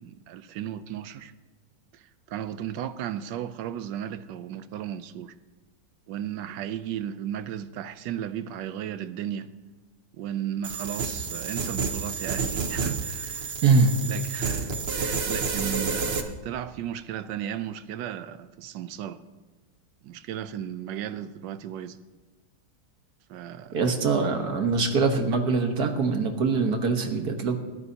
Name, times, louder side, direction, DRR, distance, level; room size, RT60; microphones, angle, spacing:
voice 1, 0.0-1.3 1.9-5.3 6.1-9.5 10.2-13.5 14.1-19.2 20.0-22.0 23.3-23.8, right 10 dB, 80° right, 1.3 m, -35 dB
sound 1, 10.6-16.2, right 4 dB, 45° right, 1.0 m, -30 dB
voice 2, 13.6-13.9 23.7-27.6, right 4 dB, 60° right, 1.7 m, -23 dB
21.0 x 14.0 x 2.8 m
omnidirectional pair, 1.9 m